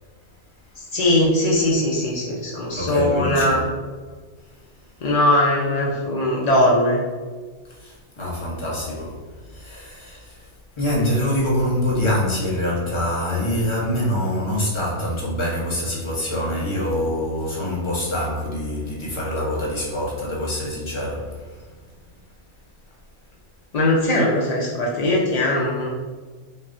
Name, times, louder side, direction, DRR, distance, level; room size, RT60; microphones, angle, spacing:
voice 1, 0.9-3.6 5.0-7.0 23.7-25.9, left 1 dB, 70° left, -4 dB, 0.4 m, -20 dB
voice 2, 2.7-3.6 7.7-10.5 10.8-21.7, left 1 dB, 25° left, -5 dB, 0.7 m, -25 dB
5.3 x 2.1 x 2.5 m, 1.4 s
omnidirectional pair, 1.4 m